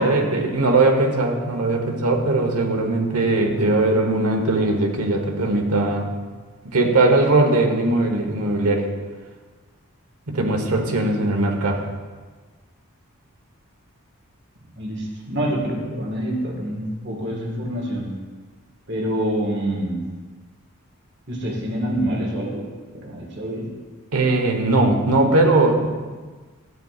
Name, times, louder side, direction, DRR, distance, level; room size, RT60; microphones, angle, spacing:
voice 1, 0.0-6.1 6.6-8.9 10.3-11.9 24.1-25.9, right 2 dB, 85° right, 3 dB, 1.2 m, -19 dB
voice 2, 14.8-18.1 18.9-20.1 21.3-22.7 22.9-23.7, right 1 dB, 50° right, -2 dB, 1.6 m, -26 dB
12.5 x 9.3 x 2.4 m, 1.4 s
head